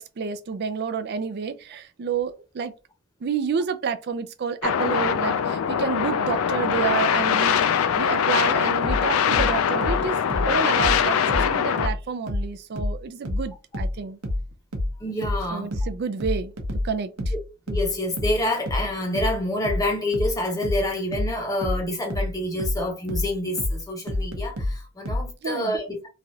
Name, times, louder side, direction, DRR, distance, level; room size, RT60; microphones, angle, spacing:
voice 1, 0.0-2.7 3.2-14.2 15.5-16.5 16.8-17.3 25.4-25.8, right 6 dB, 50° right, 0.3 m, -29 dB
sound 1, 4.6-11.9, left 7 dB, 70° left, 0.3 m, -22 dB
sound 2, 8.8-12.0 12.3-25.3, left 1 dB, 75° right, 0.7 m, -28 dB
voice 2, 15.0-15.7 17.7-26.1, left 1 dB, 15° left, 0.7 m, -27 dB
3.1 x 2.3 x 2.7 m
head